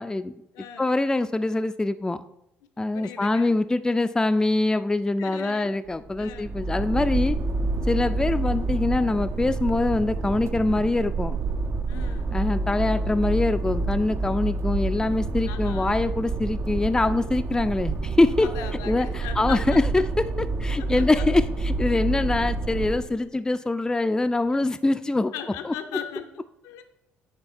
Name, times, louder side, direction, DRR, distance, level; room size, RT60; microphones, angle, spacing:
voice 1, 0.0-0.4 0.8-2.2 2.8-7.4 7.9-11.3 12.3-18.5 18.9-20.1 20.4-25.3 25.6-25.7, left 2 dB, 10° left, 11 dB, 0.4 m, -24 dB
voice 2, 0.5-0.9 2.9-3.5 5.2-5.7 6.2-6.5 11.9-12.4 15.5-16.0 18.4-20.1 20.8-21.3 25.3-26.8, left 9 dB, 75° left, 7 dB, 0.6 m, -38 dB
sound 1, 5.9-23.2, right 3 dB, 45° right, 0.5 m, -28 dB
8.8 x 3.4 x 4.3 m, 0.83 s
hypercardioid pair, 55°, 6 cm